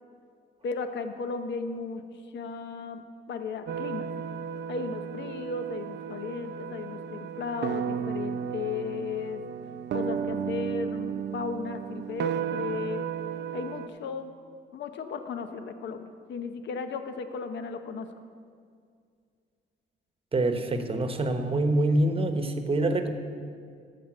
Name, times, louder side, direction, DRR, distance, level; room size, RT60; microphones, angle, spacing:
voice 1, 0.6-2.0 2.3-4.1 4.7-9.4 9.9-13.1 13.5-14.3 14.7-18.1, left 5 dB, 75° left, 8 dB, 0.8 m, -35 dB
sound 1, 3.7-13.9, right 7 dB, 70° right, 0.6 m, -34 dB
voice 2, 20.3-23.1, right 2 dB, 30° right, 7 dB, 1.0 m, -25 dB
13.0 x 5.2 x 7.7 m, 2.2 s
cardioid pair, 115°, 19 cm